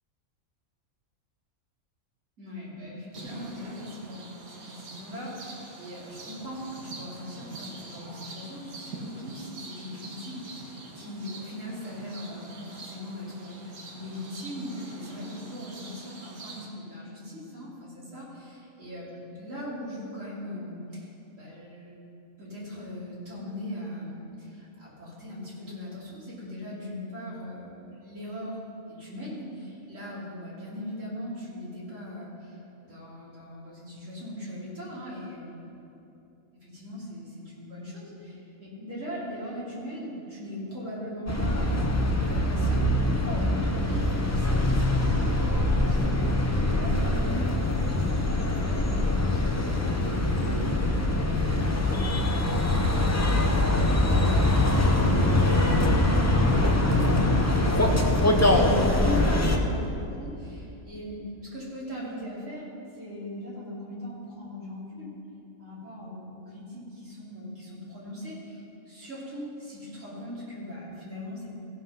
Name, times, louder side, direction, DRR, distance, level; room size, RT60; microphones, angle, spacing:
voice 1, 2.4-22.0 22.4-28.6 28.9-35.7 36.6-42.9 43.2-48.0 48.4-52.2 52.8-53.4 53.9-55.2 55.6-65.1 65.6-68.6 68.9-71.5, equal, 60° right, -8 dB, 3.2 m, -40 dB
sound 1, 3.1-16.7, right 3 dB, 80° right, 1.7 m, -44 dB
sound 2, 41.3-59.6, left 1 dB, 15° left, 0.6 m, -23 dB
15.5 x 5.8 x 5.5 m, 2.8 s
omnidirectional pair, 1.5 m